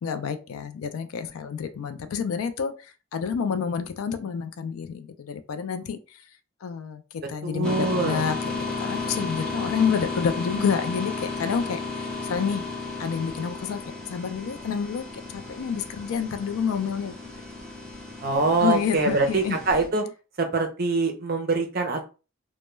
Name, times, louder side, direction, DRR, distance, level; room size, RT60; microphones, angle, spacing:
voice 1, 0.0-2.7 3.1-6.0 6.6-7.0 7.3-12.6 13.0-13.8 14.1-15.1 15.3-17.3 18.6-19.6, left 6 dB, 85° left, 0.4 m, -28 dB
voice 2, 7.4-8.2 18.2-20.0 20.4-22.0, right 3 dB, 45° right, 0.5 m, -24 dB
sound 1, 7.6-19.9, left 3 dB, 5° left, 0.6 m, -34 dB
2.2 x 2.1 x 3.0 m
head